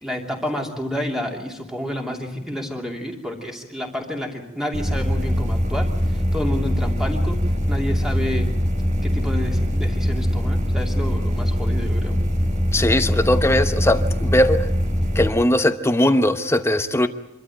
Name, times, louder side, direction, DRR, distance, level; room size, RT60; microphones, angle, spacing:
voice 1, 0.0-8.5 9.0-12.2, left 1 dB, ahead, 1 dB, 2.9 m, -30 dB
sound 1, 4.7-15.3, equal, 40° right, 2.7 m, -22 dB
voice 2, 12.7-14.7 15.1-17.1, left 1 dB, 15° left, 9 dB, 1.0 m, -19 dB
25.5 x 13.0 x 9.2 m, 0.91 s
head